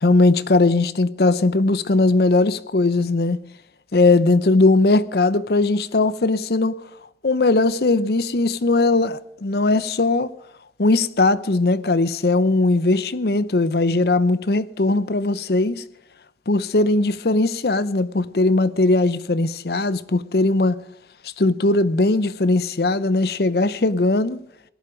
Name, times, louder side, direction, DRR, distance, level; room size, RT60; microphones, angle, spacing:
voice 1, 0.0-3.4 3.9-6.7 7.2-10.3 10.8-15.8 16.5-20.8 21.2-24.4, left 2 dB, 60° left, 0.7 m, -19 dB
18.5 x 11.0 x 5.1 m
head